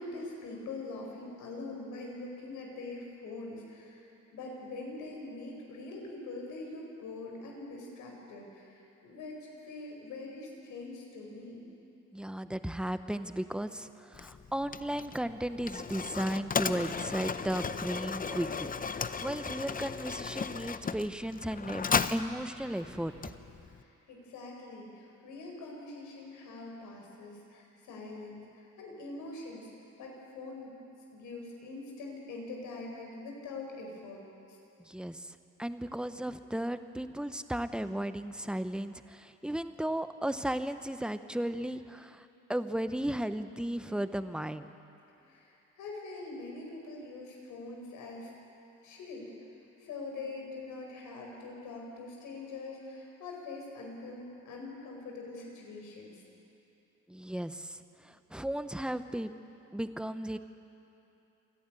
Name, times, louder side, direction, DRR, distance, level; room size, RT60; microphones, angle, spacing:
voice 1, 0.0-11.7 23.7-29.7 30.0-30.7 31.1-34.2 34.5-34.6 45.2-48.3 48.8-49.3 49.8-56.2, left 3 dB, 85° left, 0 dB, 5.2 m, -43 dB
voice 2, 12.1-23.3 34.9-42.2 42.5-44.7 57.1-57.8 58.0-59.3 59.7-60.4, right 1 dB, 5° right, 10 dB, 0.9 m, -35 dB
Mechanisms, 14.1-23.8, left 5 dB, 30° left, 0.7 m, -35 dB
28.0 x 11.5 x 9.1 m, 2.9 s
cardioid pair, 90°, 30 cm